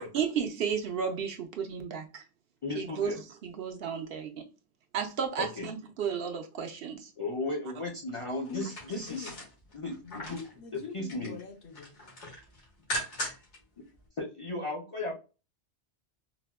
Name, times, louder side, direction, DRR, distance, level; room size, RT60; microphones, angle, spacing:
voice 1, 0.1-2.2 2.7-3.1 3.4-4.5 4.9-6.9, right 7 dB, 65° right, 0.7 m, -33 dB
voice 2, 2.6-3.2 5.4-5.7 7.2-9.3 9.7-10.4 10.7-11.3 14.2-15.1, left 2 dB, 40° left, 0.5 m, -35 dB
sound 1, 8.5-10.5 10.9-11.4 11.7-13.6 13.9-14.0, equal, 85° left, 1.6 m, -39 dB
voice 3, 8.5-8.8 9.1-9.3 10.0-12.0, left 5 dB, 65° left, 1.0 m, -43 dB
4.0 x 2.1 x 2.2 m
omnidirectional pair, 1.2 m